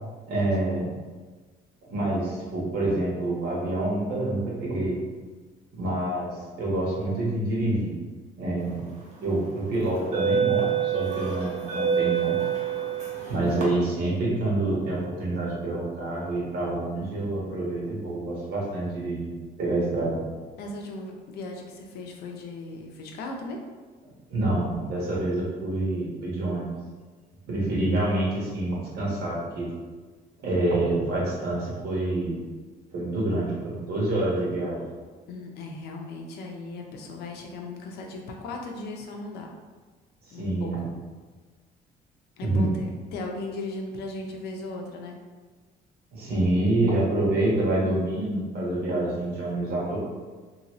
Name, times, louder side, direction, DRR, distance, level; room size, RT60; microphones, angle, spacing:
voice 1, 0.3-0.9 1.8-5.0 5.8-7.9 8.4-8.9 9.2-12.4 13.3-19.3 19.6-20.2 24.3-26.7 27.5-29.7 30.4-32.4 32.9-34.8 40.3-40.9 42.4-42.7 46.1-50.0, right 2 dB, 70° right, -5 dB, 1.3 m, -27 dB
sound 1, 8.9-9.1 9.8-13.6, right 8 dB, 40° right, 0.9 m, -27 dB
voice 2, 20.6-23.6 35.3-39.5 40.3-40.7 42.4-45.2, left 2 dB, 75° left, 1 dB, 0.6 m, -37 dB
3.0 x 2.7 x 3.0 m, 1.4 s
cardioid pair, 110°, 17 cm